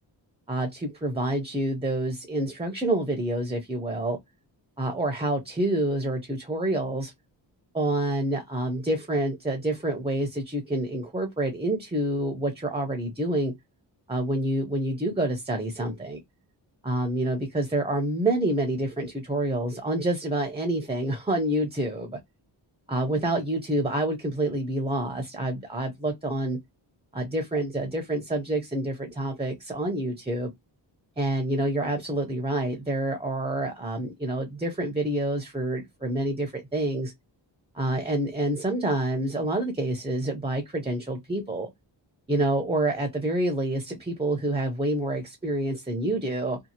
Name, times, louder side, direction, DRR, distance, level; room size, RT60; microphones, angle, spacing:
voice 1, 0.5-4.2 4.8-7.1 7.7-13.5 14.1-16.2 16.8-22.2 22.9-26.6 27.1-30.5 31.2-37.1 37.7-41.7 42.3-46.6, right 1 dB, 15° right, 0.5 m, -27 dB
2.7 x 2.3 x 2.7 m
wide cardioid pair, 155°, 44 cm